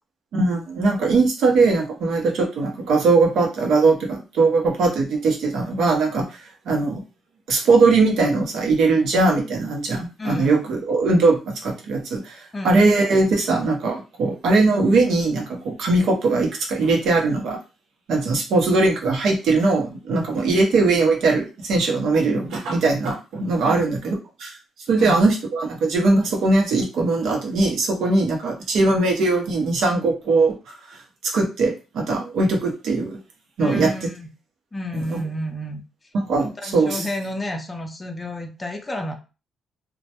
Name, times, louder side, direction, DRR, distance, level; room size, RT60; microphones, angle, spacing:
voice 1, 0.3-6.4 6.7-7.0 7.5-17.6 18.1-24.1 24.4-24.6 24.9-30.7 31.2-33.2 33.6-33.9 34.9-35.2 36.1-37.1, right 3 dB, 75° right, 1 dB, 0.7 m, -20 dB
voice 2, 10.2-10.6 12.5-12.8 23.6-23.8 25.0-25.2 28.2-28.3 33.6-34.3 34.7-35.8 36.4-39.1, left 1 dB, 20° left, 3 dB, 0.4 m, -30 dB
2.1 x 2.1 x 2.8 m, 0.31 s
cardioid pair, 90°, 0 cm